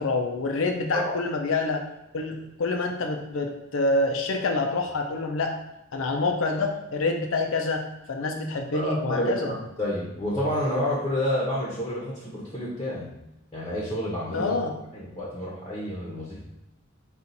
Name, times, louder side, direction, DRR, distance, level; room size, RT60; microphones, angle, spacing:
voice 1, 0.0-1.8 2.1-5.5 5.9-9.5 14.3-14.7, left 3 dB, 80° left, 3 dB, 0.5 m, -27 dB
voice 2, 8.7-13.1 13.5-14.5 14.9-16.4, left 1 dB, 20° left, -6 dB, 0.8 m, -29 dB
4.3 x 2.4 x 3.9 m, 0.89 s
head